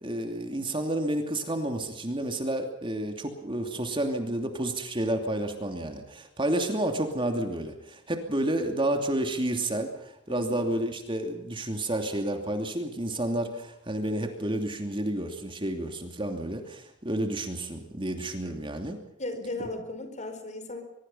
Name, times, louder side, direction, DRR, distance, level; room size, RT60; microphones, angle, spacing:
voice 1, 0.0-19.0, right 1 dB, 30° right, 5 dB, 2.8 m, -30 dB
voice 2, 10.3-10.6 19.2-20.8, left 2 dB, 40° left, 8 dB, 4.6 m, -36 dB
23.5 x 23.0 x 5.7 m, 0.81 s
head